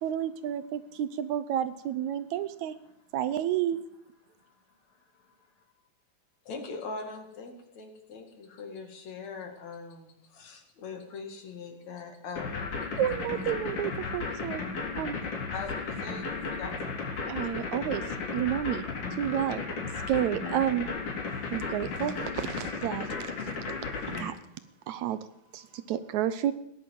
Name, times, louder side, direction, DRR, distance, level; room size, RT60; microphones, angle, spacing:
voice 1, 0.0-2.8 3.1-3.8 13.0-14.6 15.0-15.2 17.3-18.9 19.2-19.6 20.1-20.9 21.5-23.3 24.1-24.3 24.9-25.2 25.5-26.5, right 11 dB, 75° right, 2.0 m, -30 dB
voice 2, 4.3-5.7 24.6-24.9 25.6-26.0, left 7 dB, 45° left, 3.2 m, -68 dB
voice 3, 6.4-12.9 15.5-17.2, left 4 dB, 65° left, 3.2 m, -42 dB
sound 1, 12.4-24.2, left 4 dB, 80° left, 5.1 m, -34 dB
17.5 x 10.5 x 7.8 m
omnidirectional pair, 3.5 m